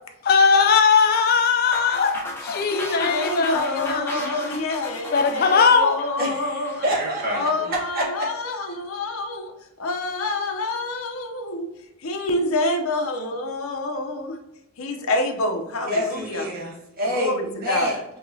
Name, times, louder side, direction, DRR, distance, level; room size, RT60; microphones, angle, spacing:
voice 1, 0.2-4.6 5.1-6.0, left 5 dB, 45° left, 7 dB, 0.4 m, -19 dB
sound 1, 1.7-6.9, left 1 dB, 10° left, 0.7 m, -34 dB
voice 2, 2.7-6.9 7.3-9.5 9.8-11.7 12.0-14.4 14.8-16.5 17.1-18.0, left 2 dB, 75° left, 4 dB, 0.7 m, -27 dB
voice 3, 6.2-8.3 15.8-18.2, equal, 45° right, -3 dB, 1.4 m, -27 dB
5.8 x 2.9 x 2.8 m, 0.90 s
head